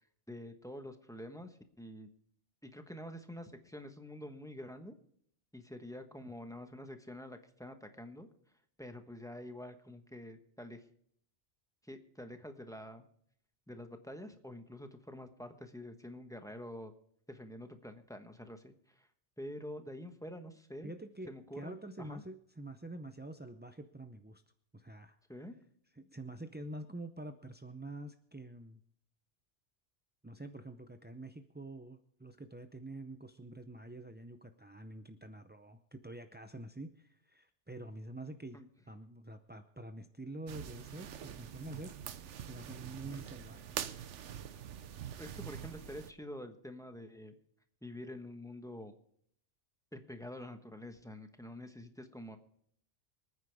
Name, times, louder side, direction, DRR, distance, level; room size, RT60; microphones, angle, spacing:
voice 1, 0.3-2.1 2.6-4.9 5.5-8.3 8.8-10.8 11.8-13.1 13.7-16.9 17.3-19.1 19.4-20.9 21.2-22.2 25.3-25.5 38.5-38.7 43.0-43.2 45.2-47.4 47.8-48.9 49.9-52.4, left 1 dB, 5° left, 6 dB, 1.1 m, -47 dB
voice 2, 20.8-24.4 24.7-25.2 26.0-28.8 30.2-38.6 38.9-41.9 42.5-43.8, right 2 dB, 15° right, 7 dB, 0.3 m, -47 dB
sound 1, 40.5-46.1, right 9 dB, 85° right, 1.1 m, -44 dB
25.5 x 9.5 x 3.5 m, 0.67 s
omnidirectional pair, 1.2 m